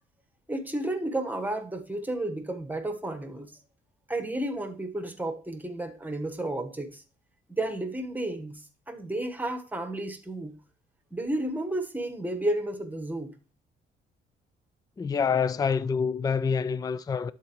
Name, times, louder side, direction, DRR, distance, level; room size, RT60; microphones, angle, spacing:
voice 1, 0.5-3.5 4.1-7.0 7.5-10.5 11.1-13.3, right 1 dB, 10° right, 1.3 m, -32 dB
voice 2, 15.0-17.3, left 6 dB, 20° left, 0.3 m, -26 dB
11.5 x 4.0 x 3.1 m
cardioid pair, 90°, 20 cm